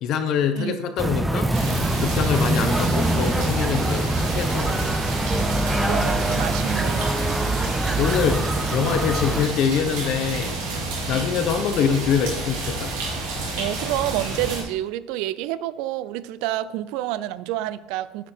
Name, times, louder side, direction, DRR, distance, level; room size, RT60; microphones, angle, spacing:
voice 1, 0.0-1.5 2.0-4.8 8.0-8.4 8.7-10.6 11.1-12.9, left 7 dB, 55° left, 7 dB, 0.8 m, -24 dB
voice 2, 0.6-0.9 5.3-7.4 11.1-11.2 13.6-18.3, right 14 dB, 70° right, 16 dB, 0.4 m, -29 dB
sound 1, 1.0-9.5, right 2 dB, 10° right, 0.5 m, -24 dB
sound 2, 1.5-14.6, right 2 dB, 85° right, 2.6 m, -30 dB
8.9 x 5.0 x 4.4 m, 0.99 s
supercardioid pair, 130°, 0 cm